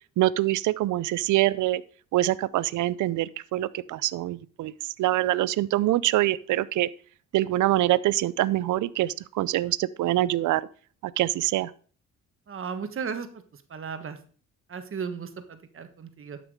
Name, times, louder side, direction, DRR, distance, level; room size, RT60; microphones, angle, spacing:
voice 1, 0.2-1.8 2.1-6.9 7.3-10.6 11.2-11.7, right 15 dB, 75° right, 18 dB, 0.6 m, -25 dB
voice 2, 12.5-14.2 14.7-16.4, right 6 dB, 45° right, 8 dB, 1.3 m, -35 dB
11.5 x 6.1 x 4.8 m, 0.43 s
cardioid pair, 90°, 30 cm